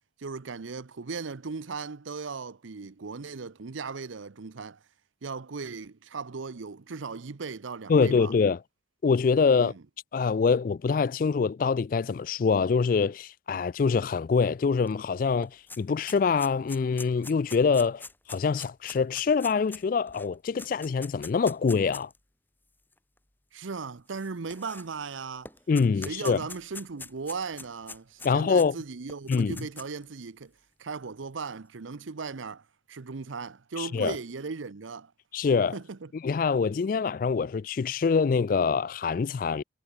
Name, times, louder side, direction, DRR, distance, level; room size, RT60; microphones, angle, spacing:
voice 1, 0.2-4.8 5.2-8.3 9.6-9.8 23.5-25.5 26.0-30.5 30.8-35.1 35.7-36.1, right 4 dB, 90° right, 0.7 m, -37 dB
voice 2, 7.9-8.6 9.0-9.7 10.1-15.5 15.8-18.0 18.3-22.1 25.7-26.4 28.2-28.8 29.3-29.5 33.8-34.2 35.3-35.8 36.2-39.6, left 5 dB, 45° left, 0.3 m, -25 dB
sound 1, 14.9-15.0 15.2-22.2 22.9-23.0 24.1-25.1 25.5-28.7 29.1-30.0, left 3 dB, 10° left, 1.9 m, -43 dB
head